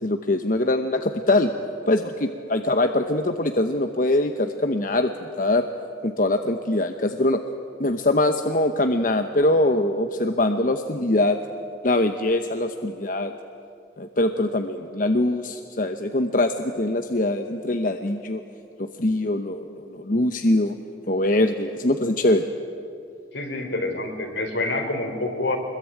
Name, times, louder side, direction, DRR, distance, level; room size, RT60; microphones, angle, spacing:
voice 1, 0.0-1.5 1.9-5.6 6.0-7.4 7.8-11.4 11.8-13.3 14.0-18.4 18.8-20.7 21.1-22.5, left 1 dB, 45° left, 7 dB, 0.9 m, -23 dB
voice 2, 23.3-25.6, left 2 dB, 70° left, 5 dB, 3.8 m, -27 dB
25.0 x 21.5 x 9.0 m, 2.6 s
head